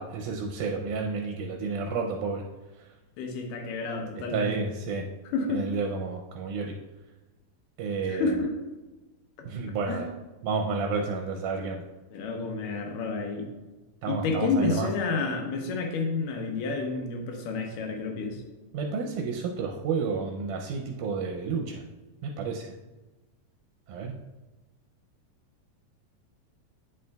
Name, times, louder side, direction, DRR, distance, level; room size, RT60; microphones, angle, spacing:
voice 1, 0.0-2.4 2.8-2.9 4.2-5.1 5.5-6.8 7.8-8.4 9.5-10.1 10.4-11.8 14.0-14.9 18.7-21.8 22.2-22.7 23.9-24.2, right 4 dB, 80° right, 2 dB, 1.9 m, -31 dB
voice 2, 3.2-4.5 5.3-5.6 8.0-8.5 9.4-9.5 9.9-10.0 12.1-13.5 14.1-18.4, left 3 dB, 75° left, 3 dB, 2.4 m, -30 dB
8.7 x 6.6 x 2.3 m, 1.2 s
omnidirectional pair, 3.9 m